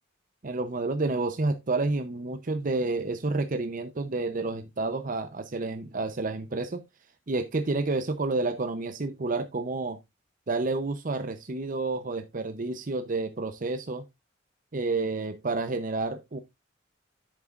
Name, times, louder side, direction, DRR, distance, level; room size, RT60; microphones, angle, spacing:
voice 1, 0.4-6.8 7.3-10.0 10.5-14.0 14.7-16.4, right 3 dB, 45° right, 0.7 m, -30 dB
10.5 x 8.3 x 2.5 m
head